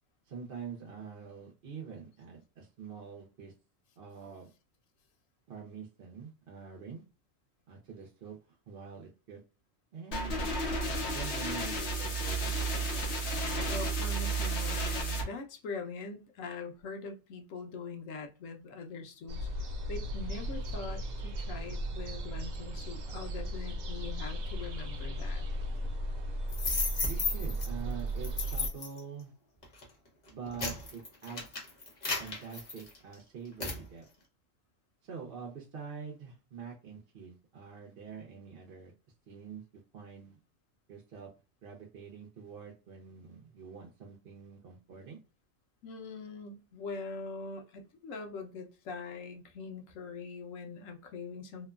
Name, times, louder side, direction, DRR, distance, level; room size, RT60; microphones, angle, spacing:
voice 1, 0.3-3.5 4.0-4.5 5.5-7.0 7.7-8.4 8.7-9.4 9.9-10.6 11.1-12.6 27.0-29.3 30.3-31.6 32.2-34.1 35.0-38.9 39.3-39.6 39.9-40.4 40.9-41.3 41.6-45.2, right 6 dB, 55° right, 0.8 m, -45 dB
sound 1, 10.1-15.2, right 2 dB, 60° left, 1.0 m, -32 dB
voice 2, 13.7-19.5 19.9-25.5 45.8-51.7, left 4 dB, 80° left, 1.0 m, -42 dB
sound 2, 19.3-28.7, right 1 dB, 80° right, 0.4 m, -36 dB
sound 3, 26.5-27.7 28.2-29.0 29.6-29.8 30.3-33.1 33.6-33.8, left 4 dB, 40° left, 0.8 m, -34 dB
2.9 x 2.1 x 2.3 m
omnidirectional pair, 1.4 m